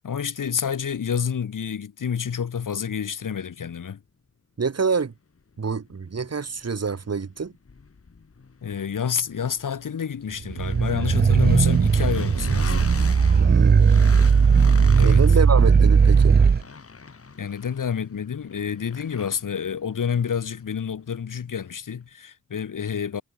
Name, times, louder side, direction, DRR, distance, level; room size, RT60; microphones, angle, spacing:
voice 1, 0.0-4.0 8.6-12.8 14.9-15.2 17.4-23.2, left 7 dB, 75° left, 3.1 m, -28 dB
voice 2, 4.6-5.1 5.6-7.5 13.4-13.9 15.0-16.4, right 5 dB, 50° right, 6.3 m, -26 dB
sound 1, 5.6-21.5, left 4 dB, 45° left, 6.2 m, -41 dB
sound 2, 10.5-16.6, right 5 dB, 30° right, 0.6 m, -17 dB
wide cardioid pair, 115°, 32 cm